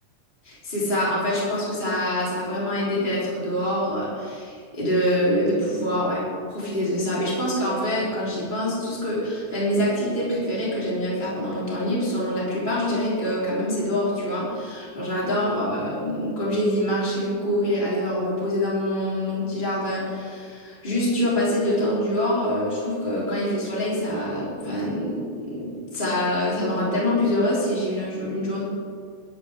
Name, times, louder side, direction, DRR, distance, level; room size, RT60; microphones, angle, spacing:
voice 1, 0.4-6.2 6.5-28.6, left 1 dB, 15° left, -7 dB, 3.8 m, -25 dB
20.5 x 12.0 x 3.7 m, 2.1 s
omnidirectional pair, 3.4 m